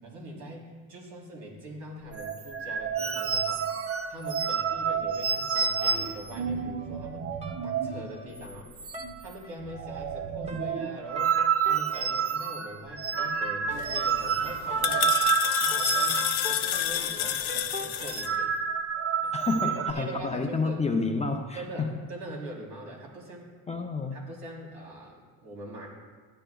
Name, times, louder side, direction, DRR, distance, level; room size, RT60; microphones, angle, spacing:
voice 1, 0.0-7.3 7.6-8.7 9.2-11.4 11.6-15.2 15.6-18.5 19.2-19.3 19.6-20.8 21.5-23.5 24.1-25.9, right 1 dB, 65° right, -2 dB, 3.4 m, -42 dB
sound 1, 2.1-8.1 8.4-8.5 8.8-9.3 9.6-17.0 17.2-17.5 17.9-19.9, right 7 dB, 35° right, 0.6 m, -29 dB
sound 2, 5.5-7.1 7.4-7.6 7.9-8.4 8.9-9.1 9.4-10.0 10.4-10.7 11.0-18.3, right 2 dB, 15° right, 1.0 m, -42 dB
sound 3, 13.7-18.3, left 12 dB, 70° left, 0.7 m, -30 dB
voice 2, 19.3-21.9 23.7-24.2, left 3 dB, 15° left, 3 dB, 0.5 m, -29 dB
14.5 x 10.0 x 2.3 m, 1.4 s
cardioid pair, 125°, 39 cm